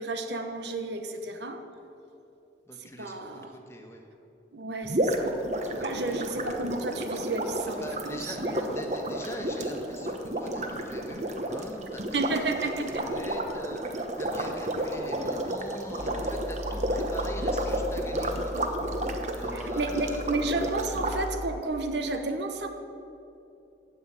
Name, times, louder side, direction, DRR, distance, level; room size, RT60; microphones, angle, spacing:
voice 1, 0.0-1.6 2.8-3.6 4.5-5.4 5.7-8.7 12.1-13.1 19.5-22.7, right 3 dB, 75° right, 6 dB, 1.1 m, -32 dB
voice 2, 2.7-3.1 3.5-4.0 5.6-6.2 7.8-12.0 13.1-18.9 19.4-20.2, equal, 15° left, 2 dB, 1.3 m, -41 dB
sound 1, 4.8-21.2, right 1 dB, 40° right, 1.1 m, -31 dB
sound 2, 16.0-21.6, equal, 55° left, 1.3 m, -38 dB
15.5 x 5.7 x 9.1 m, 2.7 s
head